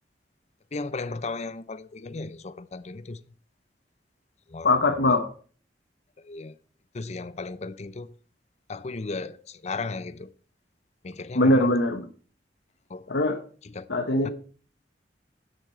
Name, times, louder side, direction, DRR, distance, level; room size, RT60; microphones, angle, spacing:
voice 1, 0.7-3.2 4.5-5.2 6.2-6.5 6.9-8.1 8.7-10.3 11.0-11.8 12.9-13.0 13.7-13.9 14.2-14.3, left 3 dB, 40° left, 0.6 m, -35 dB
voice 2, 4.6-5.3 11.3-12.1 13.1-13.4 13.9-14.3, left 2 dB, 80° left, 1.2 m, -21 dB
9.8 x 8.4 x 4.4 m
head